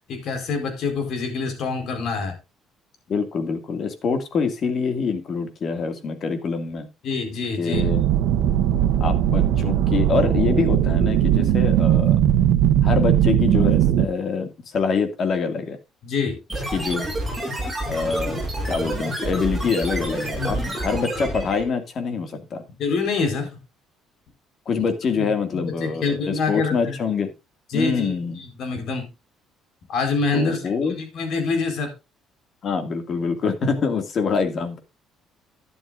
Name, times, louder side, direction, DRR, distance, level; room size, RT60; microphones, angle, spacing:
voice 1, 0.1-2.3 7.0-7.9 8.8-8.9 16.0-16.4 20.4-20.8 22.8-23.6 24.8-24.9 25.1-25.3 25.5-27.0 27.7-29.1 29.9-31.9, left 4 dB, 55° left, 5 dB, 4.4 m, -26 dB
voice 2, 3.1-6.9 7.6-8.0 9.0-12.2 12.8-15.8 16.7-17.1 17.9-18.4 18.7-22.6 24.7-27.3 27.7-28.4 30.3-31.0 32.6-34.8, left 5 dB, 40° left, 7 dB, 2.2 m, -25 dB
sound 1, 7.7-14.0, right 11 dB, 85° right, 1.0 m, -19 dB
sound 2, 16.5-21.7, right 1 dB, 5° right, 6.0 m, -28 dB
12.0 x 11.0 x 2.6 m, 0.26 s
cardioid pair, 150°, 0 cm